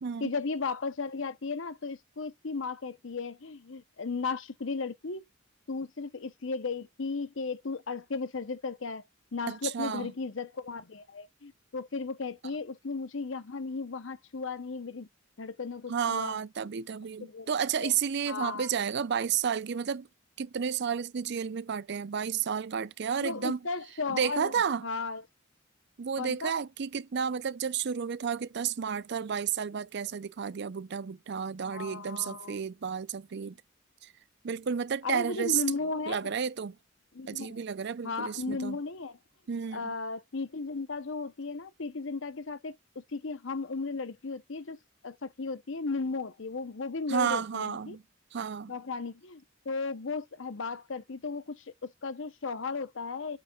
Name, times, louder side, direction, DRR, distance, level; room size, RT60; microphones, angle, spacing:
voice 1, 0.2-5.3 5.7-9.0 9.3-15.1 15.4-16.4 17.3-17.5 17.8-17.9 18.3-18.7 23.2-24.5 24.8-25.2 26.2-26.5 31.6-32.6 35.0-36.3 37.1-37.6 38.0-39.2 39.7-44.8 45.0-48.0 48.7-53.4, left 4 dB, 70° left, 0.8 m, -35 dB
voice 2, 9.5-10.1 15.9-20.1 20.4-23.6 24.1-24.9 26.0-33.6 34.0-34.1 34.4-35.6 36.1-36.8 37.3-38.8 39.5-39.9 47.1-48.0 48.3-48.7, right 7 dB, 55° right, 0.5 m, -31 dB
8.8 x 3.3 x 4.3 m
head